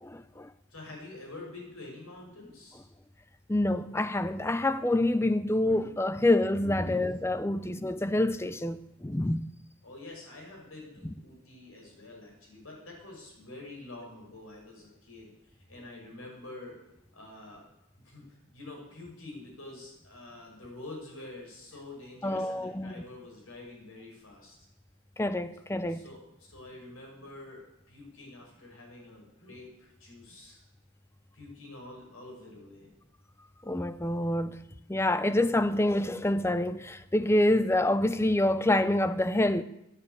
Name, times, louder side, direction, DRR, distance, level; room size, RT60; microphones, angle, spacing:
voice 1, 0.0-0.5 3.5-9.4 22.2-23.0 25.2-26.0 33.6-34.6 34.9-39.6, left 1 dB, 10° left, 0.5 m, -27 dB
voice 2, 0.7-2.9 6.8-7.0 7.5-7.7 9.8-16.8 17.1-17.6 18.0-24.6 25.9-30.6 31.3-32.9, left 2 dB, 85° left, 5.8 m, -47 dB
11.5 x 9.9 x 8.2 m
head